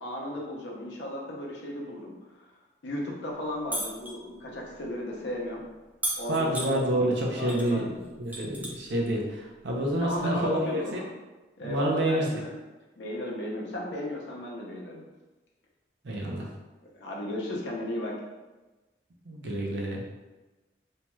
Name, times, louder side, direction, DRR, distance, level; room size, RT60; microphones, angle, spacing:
voice 1, 0.0-2.5 2.8-5.6 6.2-7.9 10.0-11.1 11.6-12.5 13.0-15.1 16.9-18.2, left 1 dB, 80° left, -2 dB, 0.6 m, -35 dB
sound 1, 3.7-4.2 6.0-6.7 7.5-7.7 8.0-8.9 10.2-10.3, right 1 dB, 10° right, 0.3 m, -33 dB
voice 2, 6.3-7.9 8.2-11.0 11.6-12.3 16.0-16.5 19.3-20.0, right 1 dB, 80° right, -2 dB, 0.5 m, -28 dB
2.7 x 2.2 x 3.0 m, 1.1 s
head